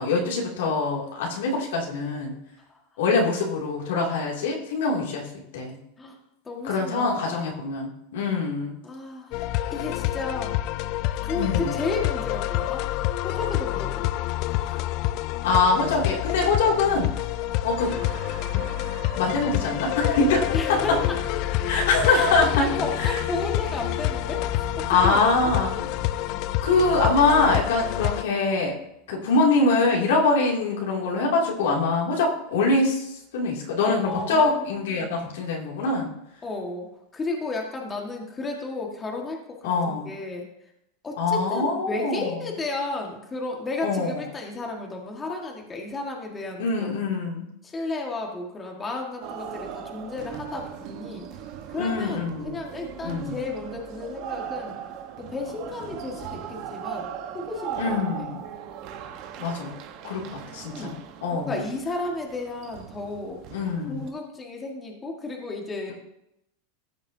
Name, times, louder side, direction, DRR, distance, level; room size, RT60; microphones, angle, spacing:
voice 1, 0.0-2.3 3.0-5.3 5.5-5.8 6.6-8.8 11.3-11.8 15.4-17.1 17.6-17.9 18.5-18.6 19.2-21.0 21.6-22.7 23.0-23.2 24.9-25.7 26.6-28.8 29.1-36.1 39.6-40.1 41.2-42.4 43.8-44.3 46.6-47.4 51.8-52.6 53.0-53.3 57.8-58.4 59.4-59.8 60.0-61.6 63.5-64.0, left 3 dB, 85° left, -2 dB, 2.7 m, -24 dB
voice 2, 6.5-7.6 8.8-9.3 9.7-10.5 11.2-12.8 13.2-14.1 14.5-14.8 20.5-21.2 21.5-21.6 22.1-22.3 22.6-25.5 33.8-35.3 36.4-36.9 37.1-40.5 41.0-46.9 47.6-51.3 51.7-54.8 55.2-57.1 57.3-58.0 60.7-61.0 61.3-63.4 63.8-65.9, left 3 dB, 15° left, 0 dB, 1.8 m, -33 dB
sound 1, 9.3-28.2, left 15 dB, 50° left, 0.4 m, -28 dB
sound 2, 17.8-28.8, equal, 35° right, 3.4 m, -41 dB
sound 3, 49.2-64.1, right 9 dB, 50° right, 1.2 m, -38 dB
15.0 x 7.5 x 2.8 m, 0.80 s
supercardioid pair, 140°, 0 cm